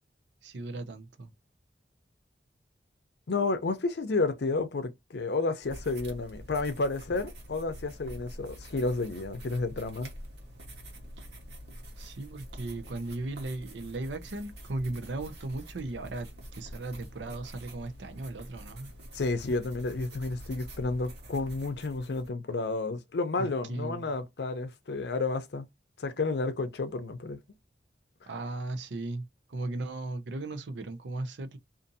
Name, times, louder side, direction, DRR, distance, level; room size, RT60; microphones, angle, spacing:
voice 1, 0.4-1.3 12.0-16.3 16.6-18.9 23.4-24.1 28.3-31.6, right 2 dB, 90° right, 0.6 m, -37 dB
voice 2, 3.3-10.1 19.1-25.6 26.0-27.4, left 3 dB, 65° left, 0.5 m, -31 dB
sound 1, 5.6-22.3, equal, 65° right, 1.0 m, -46 dB
2.6 x 2.6 x 2.5 m
head